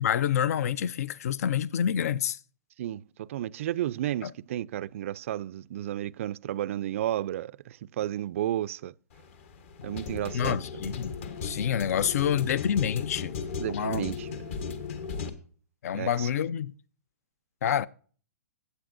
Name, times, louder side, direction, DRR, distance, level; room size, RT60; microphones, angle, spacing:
voice 1, 0.0-2.4 4.2-4.3 10.3-13.4 13.7-14.1 15.8-16.7 17.6-17.9, left 9 dB, 65° left, 0.5 m, -28 dB
voice 2, 2.8-8.9 9.8-10.6 13.6-14.3 15.9-16.3, right 12 dB, 55° right, 0.3 m, -32 dB
sound 1, 9.1-15.3, left 5 dB, 50° left, 1.2 m, -36 dB
16.5 x 8.1 x 2.5 m
hypercardioid pair, 150°, 9 cm